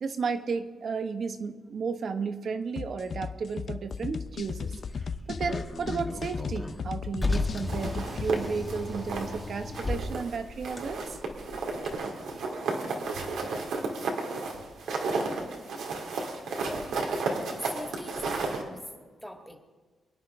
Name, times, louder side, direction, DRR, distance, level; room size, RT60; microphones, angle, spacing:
voice 1, 0.0-4.7 5.3-11.2 12.3-12.4, right 5 dB, 60° right, 8 dB, 1.1 m, -33 dB
sound 1, 2.8-8.3, left 5 dB, 55° left, 0.6 m, -36 dB
Car, 4.2-11.9, left 2 dB, 20° left, 1.4 m, -36 dB
sound 2, 7.7-9.4 9.7-10.4 10.6-18.6, right 3 dB, 85° right, 2.4 m, -33 dB
voice 2, 16.6-17.0 17.6-18.8 19.2-19.6, equal, ahead, 2 dB, 2.1 m, -42 dB
25.0 x 10.0 x 3.7 m, 1.4 s
cardioid pair, 85°, 0 cm